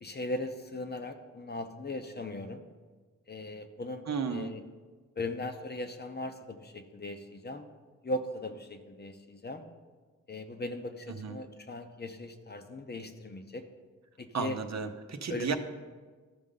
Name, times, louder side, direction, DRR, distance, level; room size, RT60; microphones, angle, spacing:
voice 1, 0.0-2.6 3.3-4.6 5.2-7.7 8.0-9.6 10.3-13.6 14.2-14.6 15.3-15.6, left 2 dB, 30° left, 7 dB, 0.8 m, -38 dB
voice 2, 4.1-4.5 11.1-11.4 14.3-15.6, right 5 dB, 55° right, 6 dB, 0.8 m, -33 dB
13.5 x 5.2 x 3.8 m, 1.4 s
cardioid pair, 70°, 31 cm